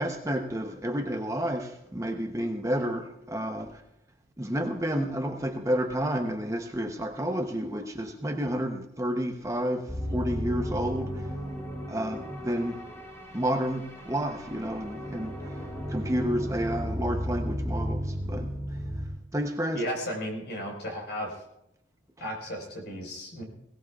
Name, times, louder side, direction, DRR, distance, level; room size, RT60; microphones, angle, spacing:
voice 1, 0.0-3.8 4.4-11.3 11.9-12.8 13.3-18.8 19.3-19.8, equal, 15° right, 0.8 m, -30 dB
sound 1, 9.9-19.1, equal, 15° left, 3.9 m, -34 dB
voice 2, 19.7-21.4 22.2-23.4, equal, 60° left, 4.7 m, -34 dB
21.0 x 17.5 x 2.4 m
head